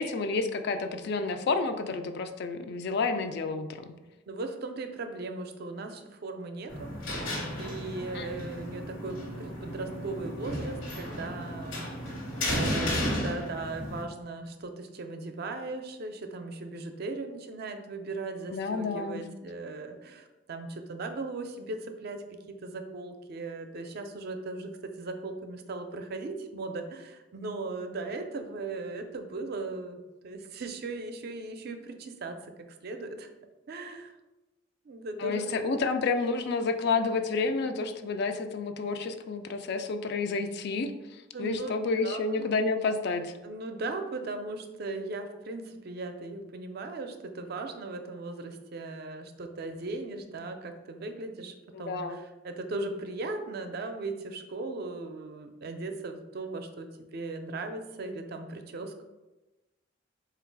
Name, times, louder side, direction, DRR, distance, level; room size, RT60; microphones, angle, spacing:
voice 1, 0.0-3.9 8.1-8.5 18.5-19.2 35.2-43.3 51.7-52.2, left 4 dB, 60° left, 8 dB, 0.4 m, -30 dB
voice 2, 4.3-7.0 7.5-22.2 22.6-24.7 25.0-32.5 32.8-33.3 33.7-34.1 34.9-35.5 41.3-42.6 43.4-59.0, right 3 dB, 55° right, 6 dB, 0.4 m, -38 dB
sound 1, 6.7-14.0, equal, 75° left, 1.1 m, -33 dB
3.7 x 2.4 x 4.5 m, 1.1 s
head